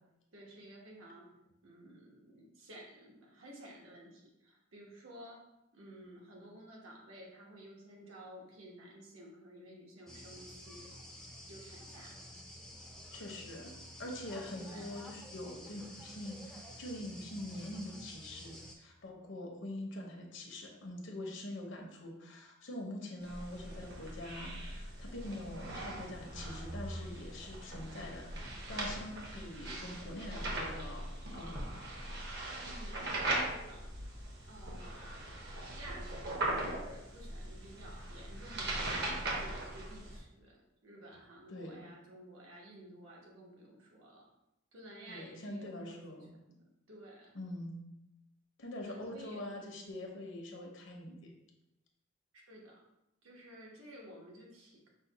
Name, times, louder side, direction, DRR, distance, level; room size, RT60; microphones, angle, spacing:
voice 1, 0.3-1.3 1.6-5.5 5.7-10.9 11.5-12.2 14.6-14.9 32.6-33.9 34.5-44.3 44.7-46.2 46.5-47.3 48.8-49.5 52.3-52.8 53.2-54.9, right 1 dB, 75° right, -2 dB, 1.1 m, -53 dB
sound 1, 10.1-18.7, equal, ahead, 0.4 m, -51 dB
voice 2, 13.1-13.7 14.0-28.4 28.7-31.7 41.5-41.8 45.1-46.4 47.3-47.8 48.6-51.3, left 1 dB, 60° left, 1 dB, 0.8 m, -44 dB
sound 2, 23.2-40.2, right 1 dB, 55° right, 0.9 m, -40 dB
5.5 x 2.2 x 4.0 m, 0.89 s
head